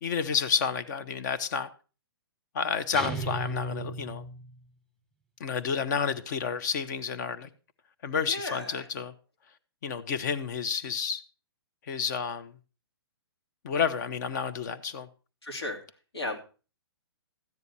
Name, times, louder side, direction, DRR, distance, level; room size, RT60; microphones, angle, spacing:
voice 1, 0.0-1.7 2.5-4.2 5.4-7.5 8.0-9.1 9.8-11.2 11.9-12.5 13.6-15.1, left 6 dB, 45° left, 1.1 m, -30 dB
sound 1, 2.9-4.7, right 2 dB, 5° left, 1.6 m, -35 dB
voice 2, 8.3-8.9 15.4-15.8 16.1-16.4, left 2 dB, 80° left, 3.0 m, -34 dB
13.5 x 9.6 x 4.2 m
figure-of-eight pair, 120°, 13 cm